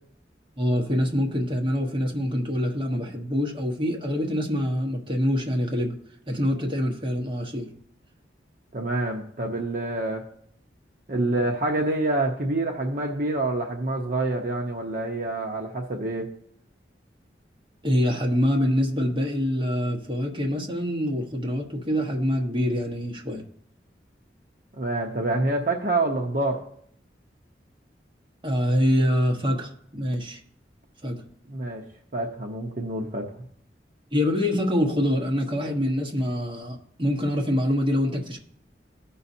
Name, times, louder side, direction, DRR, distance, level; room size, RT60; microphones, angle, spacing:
voice 1, 0.6-6.0 6.3-7.7 17.8-23.4 28.4-30.4 31.0-31.2 34.1-38.4, equal, 30° right, 0 dB, 1.2 m, -25 dB
voice 2, 8.7-10.2 11.1-16.3 24.7-26.6 31.5-31.8 32.1-33.3, right 2 dB, 50° right, 1 dB, 0.9 m, -27 dB
15.5 x 5.6 x 2.8 m, 0.65 s
head